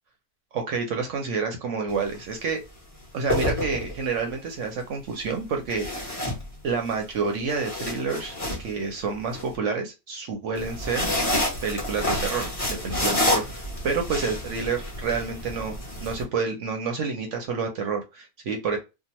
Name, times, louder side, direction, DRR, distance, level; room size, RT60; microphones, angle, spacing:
voice 1, 0.5-2.6 3.1-6.2 6.6-11.1 11.6-18.8, right 5 dB, 65° right, 4 dB, 0.8 m, -29 dB
sound 1, 1.9-2.1 3.1-4.2 5.7-6.9 7.3-9.4 10.5-16.2, left 1 dB, 25° left, 1.1 m, -29 dB
2.8 x 2.3 x 2.8 m, 0.26 s
omnidirectional pair, 1.5 m